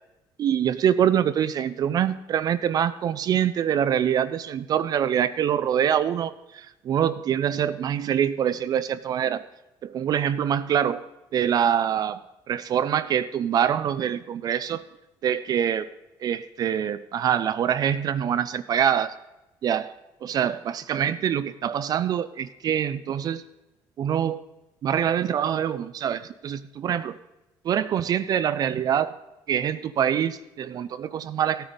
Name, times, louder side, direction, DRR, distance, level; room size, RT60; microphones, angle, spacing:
voice 1, 0.4-9.4 9.8-11.0 11.3-12.2 12.5-14.8 15.2-15.9 16.2-19.2 19.6-19.9 20.2-23.4 24.0-24.4 24.8-27.2 27.6-29.2 29.5-31.7, right 9 dB, 50° right, 12 dB, 0.5 m, -25 dB
15.0 x 8.9 x 5.2 m, 0.97 s
cardioid pair, 110°, 9 cm